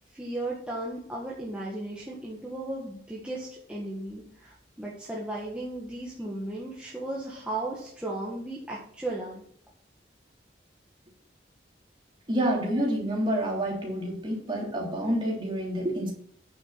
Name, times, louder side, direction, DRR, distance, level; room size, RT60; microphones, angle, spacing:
voice 1, 0.1-9.4, right 2 dB, 5° right, -5 dB, 1.6 m, -35 dB
voice 2, 12.3-16.1, right 1 dB, 25° right, -2 dB, 3.4 m, -28 dB
9.4 x 7.1 x 5.8 m, 0.62 s
head